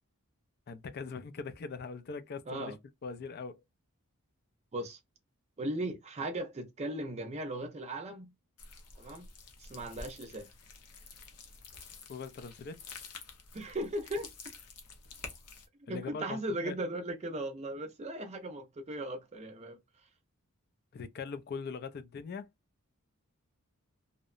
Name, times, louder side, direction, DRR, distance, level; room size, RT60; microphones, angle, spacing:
voice 1, 0.7-2.8 3.0-3.6 12.1-12.8 15.9-16.8 20.9-22.5, left 5 dB, 45° left, 0.3 m, -41 dB
voice 2, 5.6-8.3 9.0-9.3 9.6-10.5 13.5-14.3 15.8-19.8, right 1 dB, 30° right, 0.4 m, -37 dB
sound 1, 8.6-15.7, left 4 dB, 90° left, 0.7 m, -49 dB
2.7 x 2.1 x 2.4 m
head